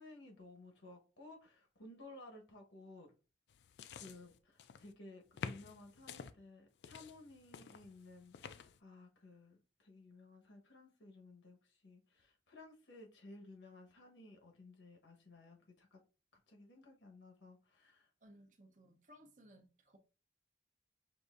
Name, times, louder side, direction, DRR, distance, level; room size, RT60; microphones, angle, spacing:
voice 1, 0.0-3.1 3.9-16.0 16.5-18.1, left 2 dB, 85° left, 1.1 m, -57 dB
sound 1, 3.5-4.9 5.4-6.3 6.8-8.8, left 6 dB, 70° left, 0.3 m, -49 dB
voice 2, 18.2-20.0, equal, 45° right, 0.7 m, -61 dB
6.2 x 2.6 x 2.5 m
head